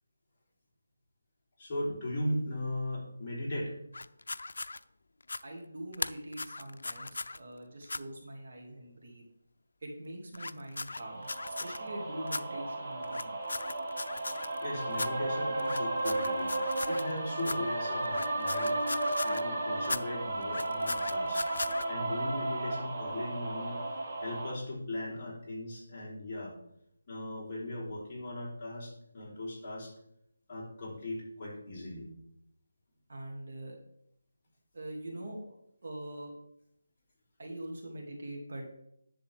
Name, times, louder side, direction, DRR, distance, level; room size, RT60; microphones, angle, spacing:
voice 1, 1.6-3.8 14.6-18.8 19.2-23.8 24.2-26.5 27.1-29.9 30.5-32.1, left 1 dB, 20° left, -8 dB, 3.7 m, -38 dB
sound 1, 3.9-4.8 5.2-5.4 5.9-7.4 7.8-8.0 10.3-11.8 12.3-12.4 13.0-14.6 14.9-15.1 15.6-17.1 17.4-17.6 18.0-19.5 19.8-20.0 20.4-21.9, left 2 dB, 85° left, 0.5 m, -38 dB
voice 2, 5.4-9.2 9.8-13.4 33.1-33.8 34.7-35.5 35.8-36.3 37.4-38.6, right 1 dB, 50° right, 0 dB, 2.6 m, -43 dB
sound 2, 11.0-24.5, right 2 dB, 30° right, 1.5 m, -34 dB
10.5 x 7.2 x 3.6 m, 0.75 s
figure-of-eight pair, 170°, 0 cm